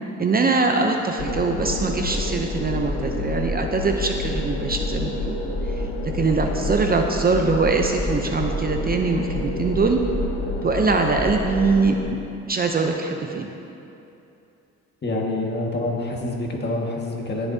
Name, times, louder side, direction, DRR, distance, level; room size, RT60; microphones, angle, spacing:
voice 1, 0.2-5.4 5.7-5.9 6.1-10.0 10.6-12.2 12.5-13.5, right 4 dB, 30° right, 3 dB, 0.6 m, -22 dB
sound 1, 1.2-12.0, left 2 dB, 80° left, 1.1 m, -28 dB
voice 2, 15.0-17.5, left 2 dB, 35° left, -1 dB, 1.7 m, -26 dB
17.5 x 7.1 x 2.8 m, 2.8 s
cardioid pair, 90°, 30 cm